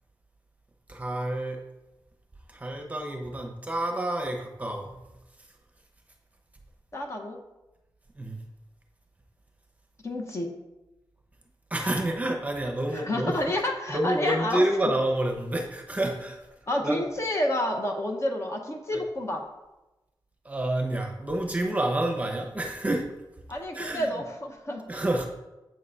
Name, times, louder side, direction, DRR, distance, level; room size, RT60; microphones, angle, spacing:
voice 1, 0.9-1.6 2.5-5.0 8.2-8.4 11.7-13.4 13.9-16.4 16.8-17.0 18.9-19.0 20.4-23.1 23.7-24.1 24.9-25.3, right 1 dB, 15° right, 2 dB, 0.8 m, -28 dB
voice 2, 6.9-7.4 10.0-10.5 12.9-14.6 16.7-19.4 23.5-25.0, left 1 dB, 35° left, 2 dB, 0.8 m, -29 dB
7.7 x 3.7 x 5.5 m, 1.0 s
wide cardioid pair, 175°, 8 cm